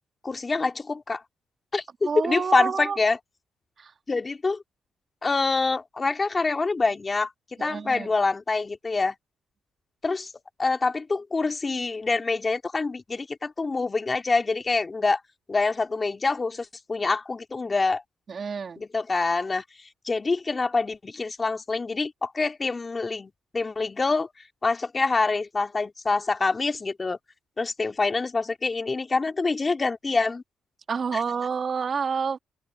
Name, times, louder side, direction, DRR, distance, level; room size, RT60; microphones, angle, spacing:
voice 1, 0.2-1.2 1.7-3.2 4.1-4.6 5.2-7.3 7.6-9.1 10.0-10.3 10.6-15.2 15.5-18.0 18.8-19.6 20.1-24.3 24.6-27.2 27.6-30.4 31.1-31.2, left 3 dB, 25° left, 2.6 m, -26 dB
voice 2, 2.0-3.0 3.8-3.9 7.6-8.1 18.3-18.8 30.9-32.4, right 6 dB, 45° right, 3.2 m, -28 dB
cardioid pair, 90°, 0 cm